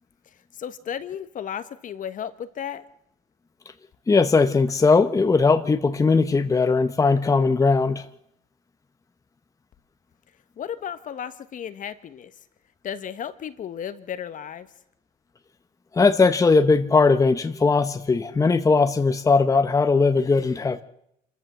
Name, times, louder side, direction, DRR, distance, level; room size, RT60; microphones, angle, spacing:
voice 1, 0.5-2.8 10.6-12.3 12.8-14.7, left 9 dB, 50° left, 12 dB, 1.3 m, -34 dB
voice 2, 4.1-8.1 15.9-20.8, left 4 dB, 20° left, 9 dB, 0.9 m, -19 dB
26.5 x 14.0 x 7.6 m, 0.78 s
cardioid pair, 110°, 17 cm